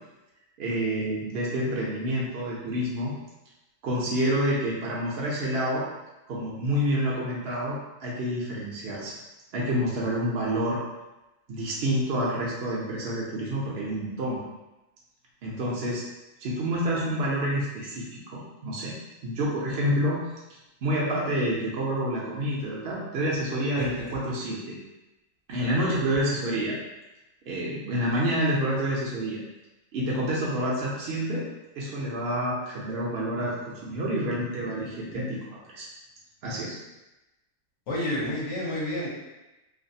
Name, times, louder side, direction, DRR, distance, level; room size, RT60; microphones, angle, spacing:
voice 1, 0.6-3.1 3.8-5.8 6.3-9.1 9.5-10.8 11.5-14.4 15.4-16.0 16.4-18.9 19.2-20.2 20.8-24.8 25.5-26.8 27.5-29.4 29.9-31.4 31.8-35.9 36.4-36.8, equal, 60° right, -5 dB, 0.7 m, -28 dB
voice 2, 25.7-26.0 37.9-39.1, left 1 dB, 70° left, -5 dB, 1.0 m, -30 dB
2.5 x 2.3 x 2.6 m, 1.0 s
omnidirectional pair, 1.4 m